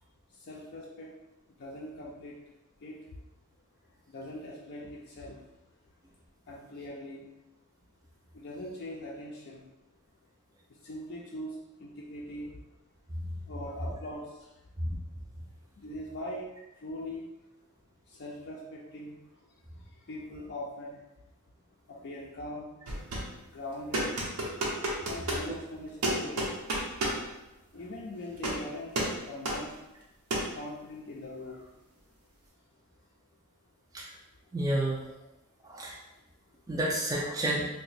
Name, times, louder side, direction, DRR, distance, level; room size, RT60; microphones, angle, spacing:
voice 1, 0.4-1.1 1.6-2.4 2.8-3.0 4.1-5.4 6.5-7.2 8.3-9.7 10.8-12.6 13.5-14.3 15.8-16.5 16.8-17.3 18.1-19.2 20.1-21.0 21.9-22.7 23.5-24.1 25.0-26.5 27.7-28.9 29.3-29.7 30.5-31.7, left 1 dB, 50° left, -3 dB, 0.4 m, -41 dB
sound 1, 22.9-23.4 23.9-25.5 26.0-27.2 28.4-28.6 29.0-29.2 29.5-29.6 30.3-30.5, right 1 dB, 90° right, 0.8 m, -31 dB
voice 2, 34.5-35.1 35.6-36.0 36.7-37.7, right 1 dB, 15° right, -4 dB, 0.4 m, -30 dB
2.8 x 2.1 x 4.1 m, 0.99 s
head